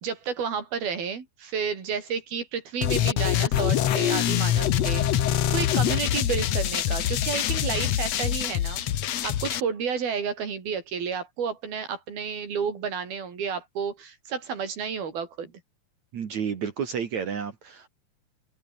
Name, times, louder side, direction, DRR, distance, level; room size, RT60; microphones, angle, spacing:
voice 1, 0.0-8.8 9.2-15.5, right 6 dB, 85° right, 6.2 m, -31 dB
sound 1, 2.8-9.6, left 11 dB, 60° left, 2.0 m, -24 dB
voice 2, 16.1-17.9, right 7 dB, 55° right, 3.2 m, -31 dB
omnidirectional pair, 4.2 m